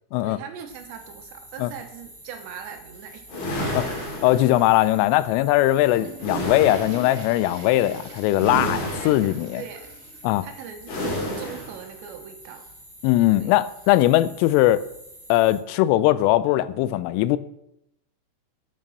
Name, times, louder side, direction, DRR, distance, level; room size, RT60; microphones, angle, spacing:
voice 1, 0.2-3.3 3.6-4.1 8.9-9.9 10.4-12.7 13.3-13.5, right 7 dB, 75° right, 6 dB, 3.0 m, -40 dB
sound 1, 0.7-15.6, equal, 15° left, 0.5 m, -47 dB
sound 2, 3.3-4.9 6.2-7.2 8.4-9.5 10.9-11.8, equal, 70° left, 4.7 m, -30 dB
voice 2, 4.2-9.6 10.2-10.5 13.0-14.8 15.3-17.4, left 15 dB, 90° left, 15 dB, 3.2 m, -20 dB
Water / Toilet flush, 5.5-10.5 10.8-10.9 11.7-11.8 13.0-13.1, right 3 dB, 45° right, 3.1 m, -43 dB
9.0 x 8.6 x 6.3 m, 0.79 s
omnidirectional pair, 5.7 m